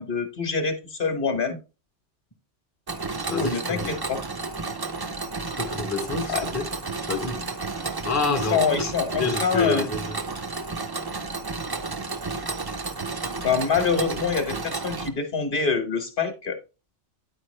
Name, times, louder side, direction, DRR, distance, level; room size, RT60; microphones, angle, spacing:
voice 1, 0.0-1.6 3.3-4.2 6.3-6.4 8.5-9.9 13.4-16.6, left 5 dB, 50° left, 1.2 m, -25 dB
Mechanisms, 2.9-15.1, right 3 dB, 35° right, 0.4 m, -32 dB
voice 2, 3.3-3.9 5.6-6.7 7.1-7.5 8.0-8.9 9.2-10.2 14.1-14.2, left 4 dB, 20° left, 0.6 m, -27 dB
9.9 x 4.6 x 3.2 m
omnidirectional pair, 1.2 m